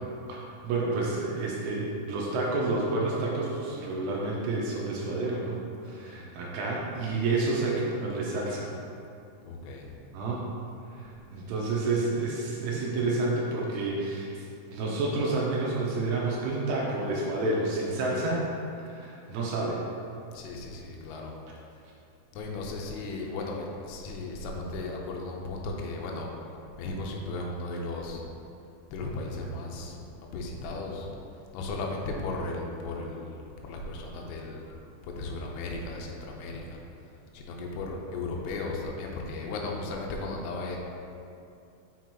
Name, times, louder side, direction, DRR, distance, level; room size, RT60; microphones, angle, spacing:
voice 1, 0.3-8.7 10.1-10.5 10.9-18.4 18.7-19.8, right 2 dB, 85° right, -4 dB, 3.2 m, -29 dB
voice 2, 5.8-6.3 9.5-10.1 20.3-21.4 22.3-28.3 28.9-30.0 30.3-31.2 31.5-34.8 35.0-36.8 37.3-40.8, left 2 dB, 90° left, 0 dB, 3.3 m, -36 dB
7.7 x 6.1 x 2.9 m, 2.6 s
omnidirectional pair, 5.8 m